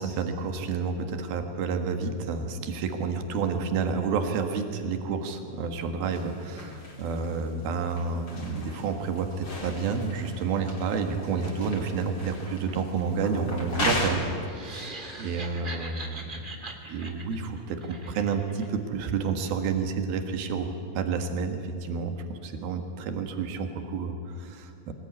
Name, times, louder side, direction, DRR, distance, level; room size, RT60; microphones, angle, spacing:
voice 1, 0.0-14.2 14.6-16.5 16.9-20.7 21.0-24.9, right 5 dB, 85° right, 6 dB, 3.6 m, -30 dB
sound 1, 6.1-14.1, left 1 dB, 30° left, 4.2 m, -37 dB
sound 2, 14.4-18.7, right 2 dB, 20° right, 1.7 m, -41 dB
24.5 x 20.5 x 9.7 m, 2.5 s
omnidirectional pair, 4.2 m